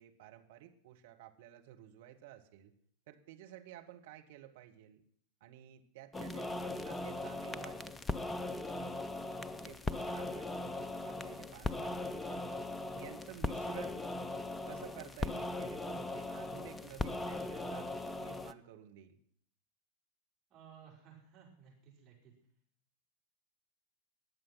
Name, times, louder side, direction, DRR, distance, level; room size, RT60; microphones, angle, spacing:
voice 1, 0.0-2.7 3.1-5.0 5.4-8.0 8.4-9.0 9.6-12.6 13.0-14.0 14.7-17.9 18.2-19.2, right 12 dB, 55° right, 5 dB, 1.7 m, -53 dB
sound 1, 6.1-18.5, left 2 dB, 10° left, 0.6 m, -39 dB
voice 2, 20.5-22.3, right 7 dB, 30° right, -2 dB, 5.2 m, -57 dB
20.5 x 7.5 x 6.1 m, 0.63 s
figure-of-eight pair, 90°, 0 cm